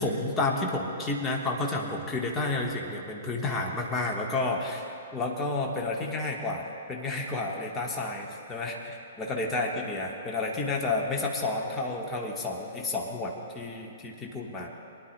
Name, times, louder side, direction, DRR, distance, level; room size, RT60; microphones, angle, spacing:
voice 1, 0.0-14.7, left 2 dB, 15° left, -1 dB, 1.4 m, -31 dB
25.0 x 10.5 x 2.3 m, 2.6 s
figure-of-eight pair, 115°, 0 cm